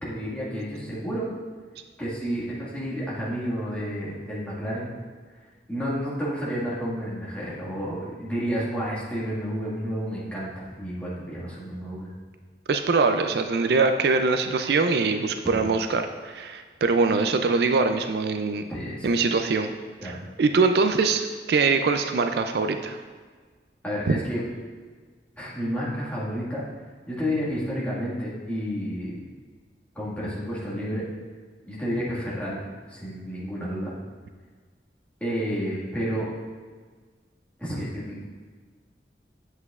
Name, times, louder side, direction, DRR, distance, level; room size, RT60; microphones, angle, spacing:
voice 1, 0.0-1.3 2.0-4.9 5.7-12.1 15.5-15.6 18.7-19.1 20.0-20.2 23.8-24.4 25.4-26.6 27.1-29.2 30.0-31.0 31.6-32.6 32.9-33.9 35.2-36.3 37.6-38.2, equal, 10° left, -8 dB, 1.7 m, -30 dB
voice 2, 12.7-18.6 19.0-19.7 20.0-23.0 24.1-24.2, right 4 dB, 65° right, 7 dB, 0.4 m, -23 dB
8.1 x 7.6 x 2.4 m, 1.5 s
head